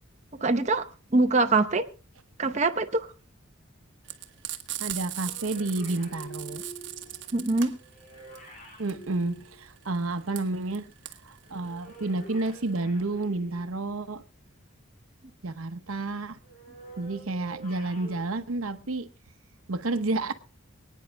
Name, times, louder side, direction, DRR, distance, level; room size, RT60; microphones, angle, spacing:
voice 1, 0.4-0.9 1.1-1.9 2.4-3.1 7.3-7.7, right 3 dB, 35° right, 0.8 m, -23 dB
Frying (food), 4.0-12.8, right 13 dB, 55° right, 1.3 m, -38 dB
voice 2, 4.8-6.6 8.8-10.9 11.2-14.2 15.4-16.4 17.0-19.1 19.7-20.3, right 2 dB, 80° right, 0.9 m, -30 dB
sound 1, 5.2-10.2 11.4-14.0 16.4-18.2, right 1 dB, 40° left, 3.5 m, -47 dB
24.5 x 9.4 x 3.4 m
head